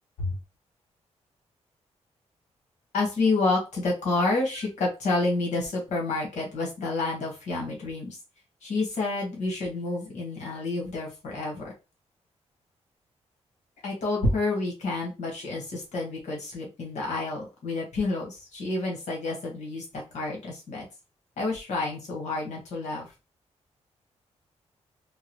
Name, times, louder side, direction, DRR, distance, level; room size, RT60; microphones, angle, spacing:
voice 1, 2.9-8.2 8.6-11.7 13.8-20.8 21.4-23.1, left 2 dB, 85° left, -2 dB, 1.5 m, -29 dB
3.8 x 2.3 x 3.1 m, 0.29 s
wide cardioid pair, 135°, 12 cm